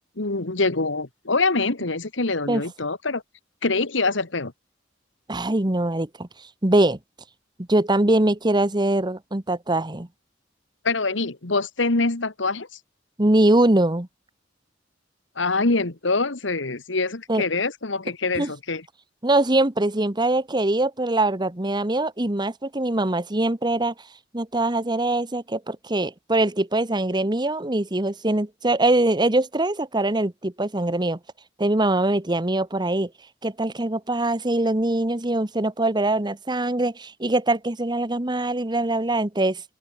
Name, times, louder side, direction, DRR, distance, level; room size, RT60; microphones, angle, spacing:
voice 1, 0.2-3.2 3.6-4.5 10.8-12.7 15.4-18.8, left 3 dB, 75° left, 1.8 m, -24 dB
voice 2, 5.3-6.3 6.6-7.0 7.7-10.1 13.2-14.1 17.3-17.4 18.4-18.5 19.2-23.9 24.3-31.2 31.6-33.1 33.4-39.6, right 2 dB, 25° right, 1.3 m, -22 dB
open air
head